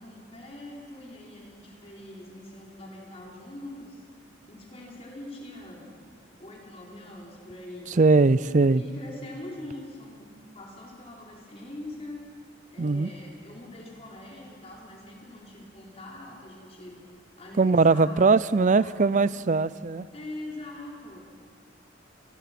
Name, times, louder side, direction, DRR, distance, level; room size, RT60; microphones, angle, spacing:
voice 1, 0.0-4.0 4.5-5.9 6.4-8.0 8.7-12.2 12.7-17.0 17.4-19.3 20.1-21.5, left 1 dB, 35° left, -2 dB, 4.4 m, -43 dB
voice 2, 8.0-8.8 12.8-13.1 17.6-20.1, right 3 dB, 40° right, 18 dB, 0.5 m, -20 dB
28.0 x 20.5 x 6.0 m, 2.3 s
head